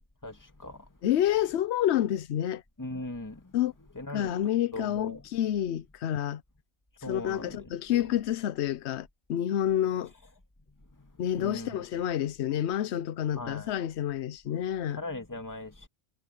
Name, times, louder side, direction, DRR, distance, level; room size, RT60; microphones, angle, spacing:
voice 1, 0.2-0.9 2.8-3.5 4.0-4.3 4.7-5.2 7.0-7.6 7.9-8.1 11.0-11.1 11.4-11.8 13.3-13.7 14.9-15.9, left 2 dB, 15° left, 2.0 m, -39 dB
voice 2, 1.0-2.6 3.5-3.7 4.1-6.4 7.1-10.1 11.2-15.0, left 11 dB, 60° left, 0.8 m, -29 dB
omnidirectional pair, 1.5 m